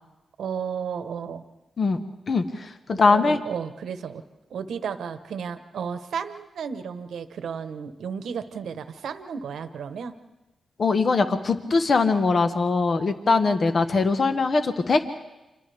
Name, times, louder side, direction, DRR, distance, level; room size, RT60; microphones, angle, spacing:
voice 1, 0.4-1.4 2.9-4.2 4.5-10.1, right 7 dB, 85° right, 10 dB, 1.0 m, -33 dB
voice 2, 2.3-3.4 10.8-15.0, left 4 dB, 55° left, 8 dB, 1.2 m, -21 dB
29.5 x 26.0 x 3.5 m, 1.0 s
cardioid pair, 70°, 0 cm